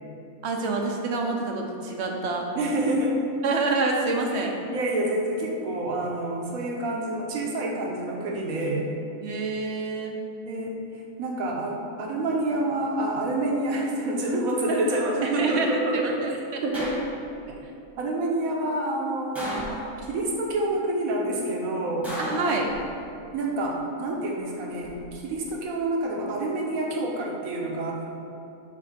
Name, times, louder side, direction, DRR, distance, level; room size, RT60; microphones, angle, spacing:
voice 1, 0.4-2.5 3.4-4.6 9.2-10.2 15.2-16.6 22.2-22.7, right 3 dB, 55° right, 1 dB, 0.9 m, -27 dB
voice 2, 2.5-3.2 4.0-8.9 10.5-10.8 11.2-16.3 16.6-17.0 18.0-19.6 20.0-22.1 23.3-28.1, right 1 dB, 70° right, -1 dB, 1.3 m, -28 dB
sound 1, 16.7-17.5 19.4-20.3 22.0-23.2 24.6-25.1, equal, ahead, 1.1 m, -35 dB
7.5 x 3.4 x 5.0 m, 2.6 s
omnidirectional pair, 1.6 m